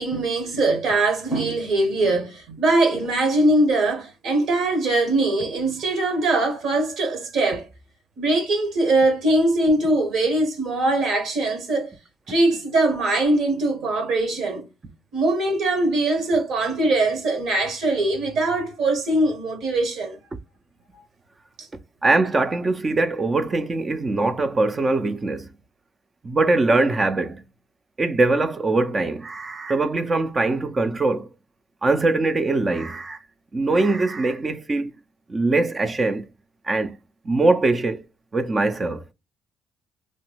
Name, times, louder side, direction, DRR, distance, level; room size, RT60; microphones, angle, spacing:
voice 1, 0.0-7.7 8.2-11.9 12.3-14.7 15.1-20.2 20.9-21.0, right 2 dB, 65° right, 1.2 m, -22 dB
voice 2, 22.0-25.5 26.2-27.4 28.0-31.3 31.8-33.2 33.5-34.9 35.3-36.3 36.6-36.9 37.2-38.0 38.3-39.0, right 2 dB, 25° right, 0.4 m, -22 dB
3.0 x 2.2 x 3.1 m
cardioid pair, 120°, 0 cm